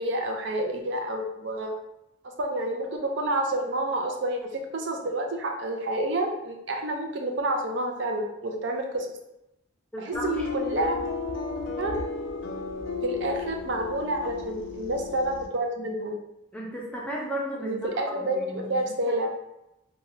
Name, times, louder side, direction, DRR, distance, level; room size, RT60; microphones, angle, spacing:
voice 1, 0.0-1.7 2.2-9.1 10.0-11.0 11.8-12.0 13.0-16.2 17.6-19.3, right 1 dB, 65° right, 3 dB, 0.4 m, -29 dB
voice 2, 9.9-10.5 16.5-17.8 18.1-19.1, equal, 5° left, -3 dB, 0.5 m, -35 dB
sound 1, 10.1-15.5, left 5 dB, 80° left, 0.4 m, -33 dB
3.2 x 2.2 x 2.7 m, 0.88 s
head